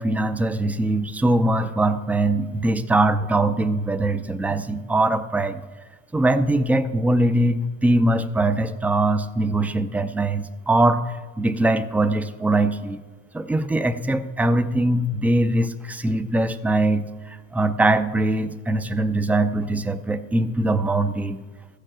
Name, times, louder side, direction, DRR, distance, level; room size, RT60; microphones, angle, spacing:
voice 1, 0.0-5.6 6.1-11.0 11.4-13.0 13.3-21.4, right 2 dB, 5° right, 10 dB, 0.4 m, -22 dB
14.0 x 6.7 x 7.5 m, 1.4 s
supercardioid pair, 125°, 40 cm